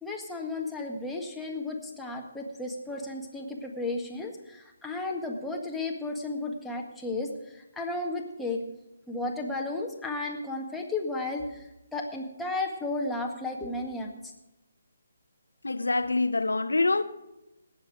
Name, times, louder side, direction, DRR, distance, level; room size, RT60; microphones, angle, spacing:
voice 1, 0.0-8.6 9.1-11.6 11.9-14.1, left 2 dB, 5° left, 1.8 m, -33 dB
voice 2, 15.6-17.0, left 3 dB, 85° left, 1.0 m, -25 dB
18.5 x 8.0 x 5.0 m
figure-of-eight pair, 145°, 0 cm